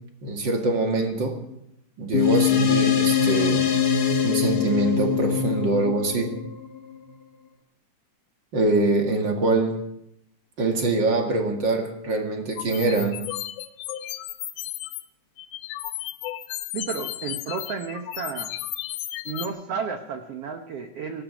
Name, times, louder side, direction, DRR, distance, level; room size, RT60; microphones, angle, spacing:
voice 1, 0.2-1.4 2.0-3.7 4.2-6.3 8.5-9.8 10.6-13.2, right 2 dB, 40° right, 3 dB, 2.0 m, -24 dB
sound 1, 2.1-6.9, left 7 dB, 70° left, 0.9 m, -23 dB
sound 2, 12.5-15.0 15.4-19.5, left 14 dB, 85° left, 2.7 m, -34 dB
voice 2, 16.7-18.5 19.2-21.2, right 6 dB, 90° right, 6 dB, 1.3 m, -32 dB
18.5 x 15.5 x 5.1 m, 0.77 s
omnidirectional pair, 4.2 m